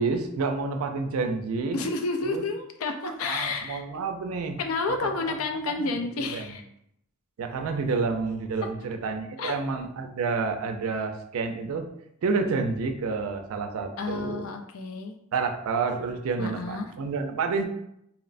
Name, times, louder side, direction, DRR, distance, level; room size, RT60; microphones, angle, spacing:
voice 1, 0.0-1.8 2.2-2.4 3.0-4.6 5.8-5.9 6.3-6.6 7.4-11.9 12.2-14.5 15.3-17.6, right 4 dB, 85° right, 5 dB, 0.4 m, -29 dB
voice 2, 1.7-3.8 4.6-6.6 9.4-9.6 14.0-15.2 16.4-16.9, left 3 dB, 80° left, 5 dB, 0.4 m, -30 dB
2.8 x 2.0 x 2.5 m, 0.76 s
head